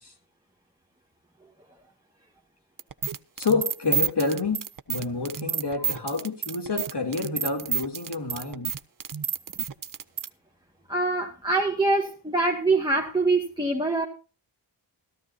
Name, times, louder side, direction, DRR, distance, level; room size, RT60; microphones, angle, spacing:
sound 1, 2.8-10.3, right 7 dB, 40° right, 0.7 m, -29 dB
voice 1, 3.4-8.7, left 3 dB, 55° left, 4 dB, 2.9 m, -28 dB
voice 2, 10.9-14.1, right 2 dB, 10° right, -1 dB, 1.7 m, -24 dB
14.5 x 13.5 x 2.8 m, 0.34 s
cardioid pair, 50°, 49 cm